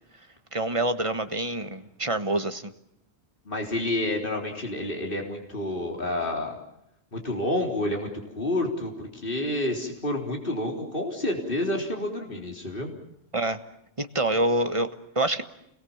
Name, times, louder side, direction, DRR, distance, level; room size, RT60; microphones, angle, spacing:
voice 1, 0.5-2.7 13.3-13.6 14.0-15.4, right 1 dB, 30° right, 10 dB, 1.4 m, -26 dB
voice 2, 3.5-6.6 7.1-8.1 8.4-12.9, left 1 dB, 55° left, 2 dB, 4.2 m, -29 dB
30.0 x 21.5 x 7.3 m, 0.78 s
omnidirectional pair, 1.1 m